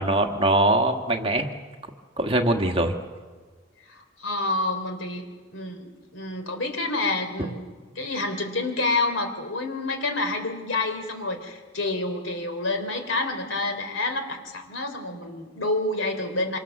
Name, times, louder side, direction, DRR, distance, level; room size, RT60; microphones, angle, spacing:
voice 1, 0.0-1.5 2.2-2.9, right 1 dB, 30° right, 3 dB, 1.6 m, -22 dB
voice 2, 3.8-5.3 5.5-16.6, left 2 dB, 80° left, 6 dB, 3.5 m, -28 dB
26.0 x 25.0 x 7.2 m, 1.5 s
head